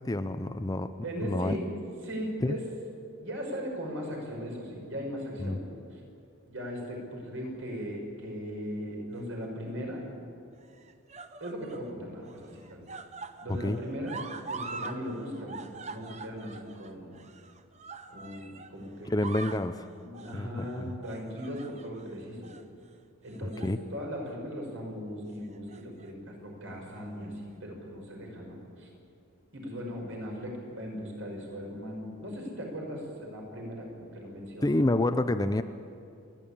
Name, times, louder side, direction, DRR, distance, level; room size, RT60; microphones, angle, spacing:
voice 1, 0.0-0.9 1.2-1.6 2.4-2.6 5.4-5.6 13.5-13.8 19.0-19.9 20.3-20.9 23.4-23.8 34.6-35.6, left 1 dB, 15° left, 10 dB, 0.4 m, -28 dB
voice 2, 1.0-1.6 2.0-2.7 3.2-5.7 6.5-10.0 11.4-12.8 13.4-14.2 14.5-17.1 18.1-19.5 20.0-22.5 23.2-28.9 29.5-34.8, equal, 65° right, 0 dB, 5.7 m, -38 dB
sound 1, 9.1-9.7 10.6-11.9 12.2-15.0 15.3-18.7 19.0-19.7 20.1-20.4 21.0-22.1 22.4-22.6 23.3-23.8 24.1-24.3 25.4-26.1 27.0-27.1, right 4 dB, 30° right, 0.8 m, -43 dB
28.5 x 11.0 x 8.7 m, 2.4 s
head